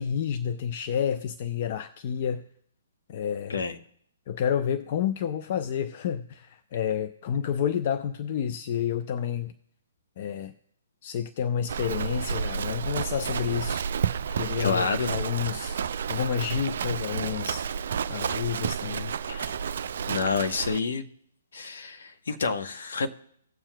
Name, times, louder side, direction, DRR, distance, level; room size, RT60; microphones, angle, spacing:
voice 1, 0.0-2.5 3.1-3.6 4.3-9.5 10.2-10.5 11.0-13.8 14.3-15.8 16.1-17.7 18.1-19.1, left 8 dB, 45° left, 10 dB, 0.5 m, -30 dB
Livestock farm animals working animals, 11.7-20.8, right 7 dB, 60° right, 0.3 m, -31 dB
voice 2, 14.6-15.2 19.3-19.5 20.1-21.1 21.5-23.1, left 5 dB, 65° left, 8 dB, 0.9 m, -28 dB
17.5 x 7.2 x 2.2 m, 0.68 s
figure-of-eight pair, 130°, 0 cm